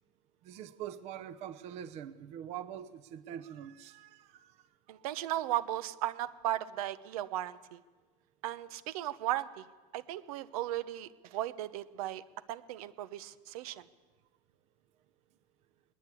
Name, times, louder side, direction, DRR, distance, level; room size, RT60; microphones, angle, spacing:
voice 1, 0.4-4.6 5.0-5.1, right 10 dB, 35° right, 13 dB, 0.8 m, -44 dB
voice 2, 4.9-7.8 8.4-9.6 9.9-12.2 12.5-13.8, right 13 dB, 75° right, 14 dB, 0.9 m, -36 dB
20.5 x 19.5 x 8.4 m, 1.3 s
supercardioid pair, 170°, 19 cm